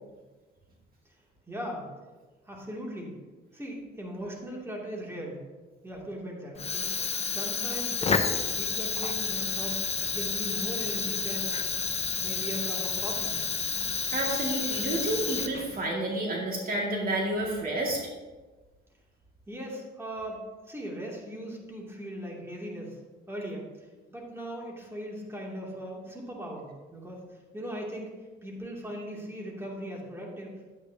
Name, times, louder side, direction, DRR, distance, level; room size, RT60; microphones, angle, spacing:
voice 1, 1.5-1.9 2.5-3.1 3.5-5.4 5.8-6.8 7.2-8.2 8.5-11.5 12.2-13.3 19.5-20.4 20.7-23.0 23.3-23.7 24.1-27.2 27.5-28.1 28.4-30.5, equal, 10° right, -3 dB, 2.6 m, -38 dB
Fire, 6.5-15.9, left 5 dB, 30° left, 0.8 m, -30 dB
voice 2, 14.1-18.0, right 1 dB, 45° right, -2 dB, 2.2 m, -30 dB
11.5 x 9.2 x 2.8 m, 1.3 s
cardioid pair, 90°, 20 cm